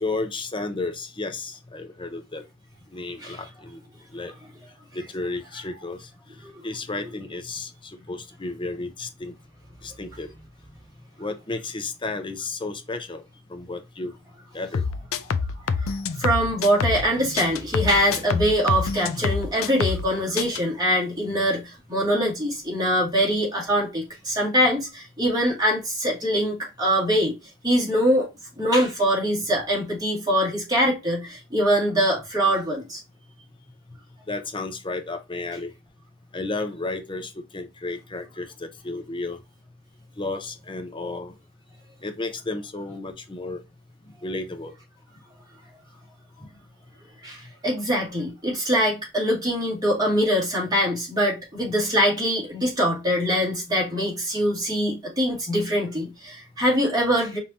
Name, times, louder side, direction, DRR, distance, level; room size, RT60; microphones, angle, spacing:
voice 1, 0.0-2.4 2.9-3.8 4.1-4.3 4.9-6.1 6.6-9.3 9.8-10.3 11.2-13.2 13.5-14.1 14.5-14.8 34.3-35.7 36.3-39.4 40.2-41.3 42.0-43.6 44.2-44.7, left 3 dB, 25° left, 0.7 m, -32 dB
sound 1, 14.7-17.1 17.4-20.1 20.4-20.6, left 5 dB, 75° left, 0.5 m, -26 dB
voice 2, 15.7-27.3 27.6-28.3 28.6-33.0 47.2-57.4, equal, 20° right, 2.3 m, -23 dB
5.2 x 2.9 x 2.8 m
head